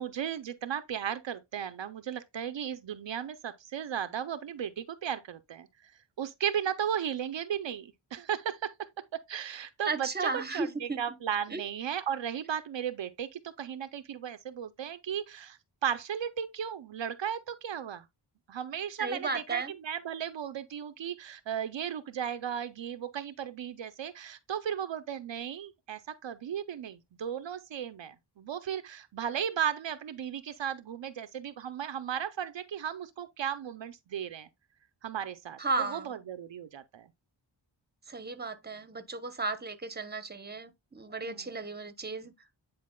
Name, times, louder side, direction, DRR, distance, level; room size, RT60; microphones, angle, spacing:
voice 1, 0.0-5.9 6.2-8.7 9.3-18.0 18.5-34.5 35.0-35.6 35.9-37.1 41.2-41.5, right 9 dB, 70° right, 0.7 m, -35 dB
voice 2, 9.8-11.0 11.5-11.6 19.0-19.7 35.6-36.2 38.1-42.3, right 3 dB, 20° right, 0.9 m, -34 dB
9.5 x 4.6 x 2.3 m
wide cardioid pair, 70°, 46 cm